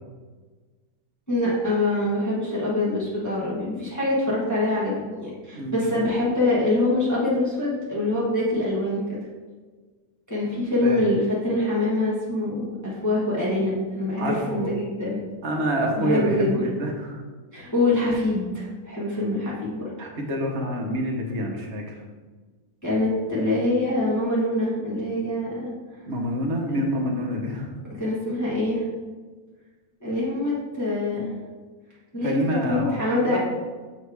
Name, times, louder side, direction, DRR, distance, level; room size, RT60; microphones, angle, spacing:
voice 1, 1.3-9.2 10.3-15.2 16.0-16.6 17.5-19.9 22.8-25.7 26.7-26.8 28.0-28.8 30.0-31.3 32.1-32.3 32.7-33.4, left 2 dB, 15° left, -7 dB, 1.2 m, -24 dB
voice 2, 14.2-14.7 15.4-17.2 20.0-21.9 26.1-27.7 32.2-33.4, right 1 dB, 50° right, 0 dB, 1.2 m, -27 dB
7.3 x 3.3 x 4.7 m, 1.4 s
omnidirectional pair, 1.6 m